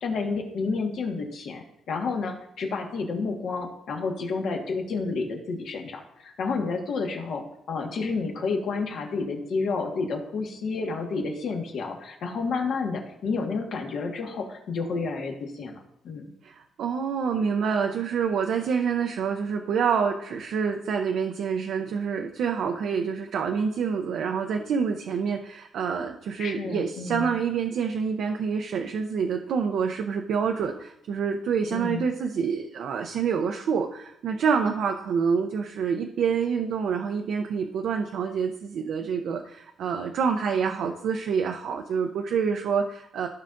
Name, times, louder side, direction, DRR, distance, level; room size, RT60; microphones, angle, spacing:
voice 1, 0.0-16.2 26.4-27.3 31.7-32.1, left 4 dB, 60° left, 1 dB, 1.5 m, -30 dB
voice 2, 16.4-43.3, right 6 dB, 65° right, 3 dB, 0.6 m, -27 dB
15.0 x 5.5 x 2.6 m, 0.78 s
cardioid pair, 150°, 0 cm